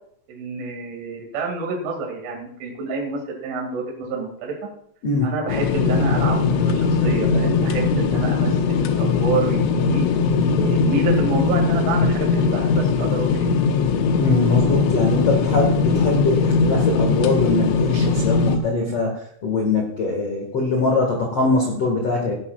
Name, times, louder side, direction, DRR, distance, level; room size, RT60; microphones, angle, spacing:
voice 1, 0.3-4.6 5.2-10.0 10.5-13.5, right 3 dB, 80° right, -1 dB, 4.8 m, -28 dB
sound 1, 5.5-18.6, left 5 dB, 80° left, 3.2 m, -20 dB
voice 2, 14.2-22.3, left 3 dB, 55° left, 0 dB, 1.7 m, -22 dB
17.5 x 11.0 x 2.4 m, 0.68 s
omnidirectional pair, 5.5 m